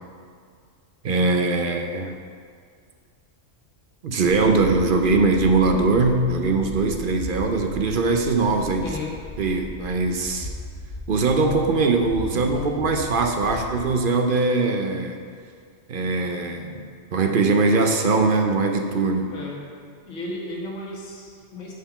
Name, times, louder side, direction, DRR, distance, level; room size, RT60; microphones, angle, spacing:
voice 1, 1.0-2.2 4.0-8.9 9.4-10.5 11.1-15.2 15.9-16.8 17.1-19.3, right 3 dB, 55° right, 4 dB, 0.7 m, -21 dB
sound 1, 4.3-14.0, left 1 dB, 55° left, 1.8 m, -37 dB
voice 2, 8.8-9.2 12.3-12.5 19.3-19.6 20.1-21.7, left 1 dB, 80° left, -2 dB, 1.7 m, -34 dB
6.5 x 5.8 x 5.7 m, 2.1 s
omnidirectional pair, 1.3 m